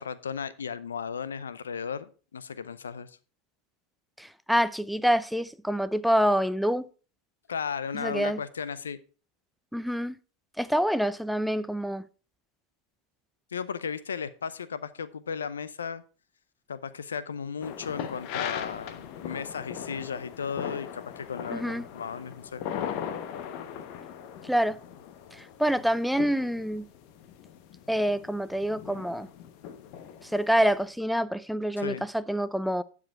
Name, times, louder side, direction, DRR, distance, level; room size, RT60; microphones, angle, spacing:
voice 1, 0.0-3.2 7.5-9.0 13.5-16.0 16.7-22.6 31.8-32.0, left 6 dB, 90° left, 0.6 m, -35 dB
voice 2, 4.2-6.9 7.9-8.4 9.7-10.1 10.6-12.0 21.5-21.8 24.4-24.8 25.3-26.9 27.9-29.3 30.2-32.8, equal, ahead, 0.5 m, -26 dB
sound 1, 17.6-30.8, left 9 dB, 55° left, 1.1 m, -39 dB
11.5 x 5.0 x 4.5 m
hypercardioid pair, 95°, 0 cm